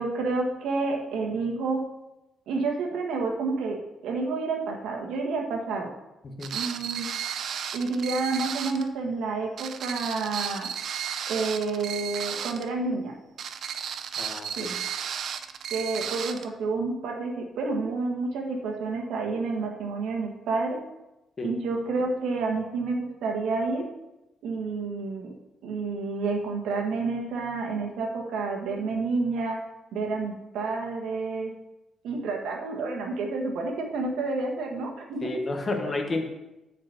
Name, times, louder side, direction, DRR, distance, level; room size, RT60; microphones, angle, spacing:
voice 1, 0.0-1.8 2.5-3.8 4.0-5.9 6.5-7.1 7.7-10.7 11.3-13.2 14.6-14.8 15.7-20.8 21.4-23.9 24.4-25.3 25.6-29.6 29.9-31.5 32.0-35.3 35.7-36.0, right 3 dB, 85° right, 2 dB, 1.5 m, -29 dB
sound 1, 6.4-8.9 9.6-12.7 13.4-16.5, right 8 dB, 50° right, 0.5 m, -34 dB
voice 2, 14.2-14.7 21.4-21.5 35.2-36.3, left 2 dB, 25° left, 3 dB, 1.1 m, -31 dB
6.9 x 5.2 x 7.1 m, 0.97 s
cardioid pair, 180°, 0 cm